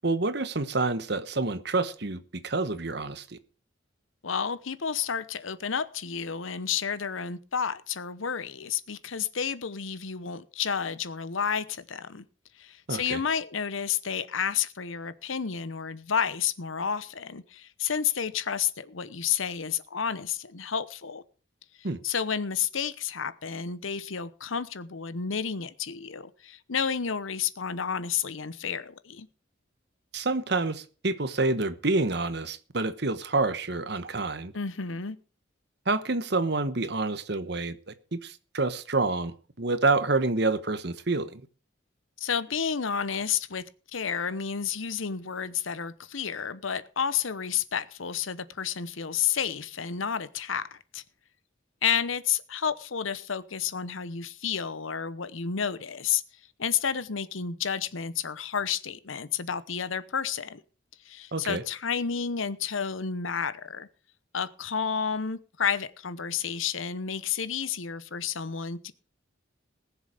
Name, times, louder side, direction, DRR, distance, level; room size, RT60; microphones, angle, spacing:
voice 1, 0.0-3.4 12.9-13.2 21.8-22.0 30.1-34.5 35.9-41.4 61.3-61.6, right 3 dB, 55° right, 12 dB, 1.1 m, -28 dB
voice 2, 4.2-12.2 12.6-21.2 22.0-29.3 34.5-35.2 42.2-43.6 43.9-51.0 51.8-56.2 56.6-60.6 61.0-63.9 64.3-68.9, left 7 dB, 85° left, 15 dB, 0.9 m, -31 dB
20.0 x 7.1 x 5.0 m, 0.38 s
head